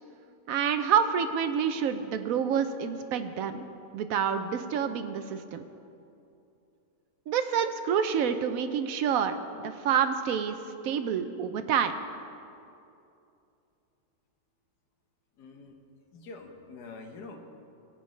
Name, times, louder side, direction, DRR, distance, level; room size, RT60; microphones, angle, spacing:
voice 1, 0.5-3.7 3.9-5.6 7.3-9.4 9.6-10.6 10.8-11.9, right 7 dB, 70° right, 9 dB, 0.9 m, -28 dB
voice 2, 15.4-15.7 16.1-17.4, left 3 dB, 70° left, 3 dB, 1.5 m, -45 dB
18.0 x 8.7 x 3.2 m, 2.6 s
omnidirectional pair, 1.8 m